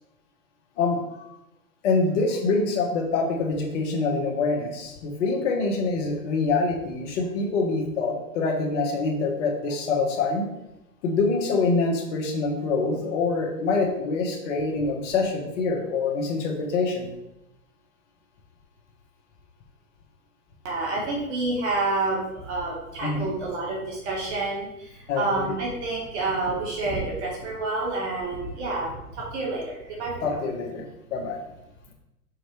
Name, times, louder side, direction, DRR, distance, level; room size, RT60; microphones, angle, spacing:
voice 1, 0.8-1.4 1.8-10.5 11.0-17.1 23.0-23.3 25.1-25.5 30.2-30.9 31.1-31.4, left 3 dB, 50° left, 2 dB, 1.4 m, -25 dB
voice 2, 20.6-30.3, right 2 dB, 45° right, -3 dB, 1.6 m, -29 dB
6.4 x 4.6 x 3.2 m, 0.87 s
hypercardioid pair, 130°, 45 cm